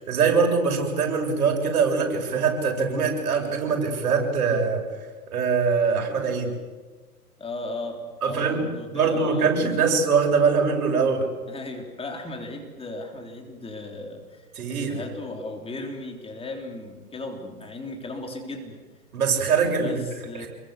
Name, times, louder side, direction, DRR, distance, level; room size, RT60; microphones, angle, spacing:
voice 1, 0.1-4.8 5.3-6.5 8.2-11.3 14.6-15.0 19.1-20.0 20.4-20.5, right 5 dB, 65° right, 2 dB, 7.7 m, -23 dB
voice 2, 7.4-9.9 11.5-18.8 19.6-20.5, left 2 dB, 10° left, 3 dB, 3.6 m, -36 dB
27.5 x 23.0 x 8.2 m, 1.3 s
hypercardioid pair, 120°, 46 cm